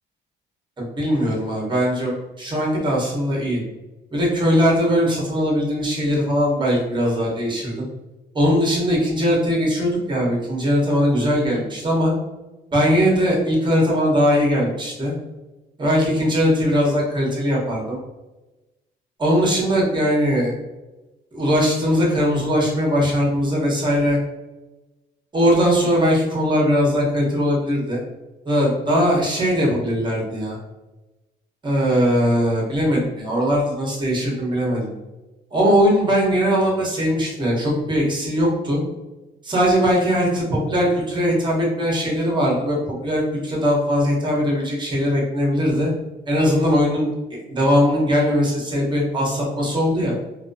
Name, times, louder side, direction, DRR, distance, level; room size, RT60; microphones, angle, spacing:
voice 1, 0.8-2.1 2.4-3.6 4.1-7.9 8.3-12.1 12.7-15.1 15.8-18.0 19.2-20.5 21.3-24.2 25.3-28.0 28.5-30.6 31.6-34.9 35.5-38.8 39.4-45.9 46.3-47.1 47.5-50.1, equal, 25° right, -3 dB, 0.9 m, -20 dB
2.2 x 2.2 x 2.5 m, 1.1 s
cardioid pair, 90°, 20 cm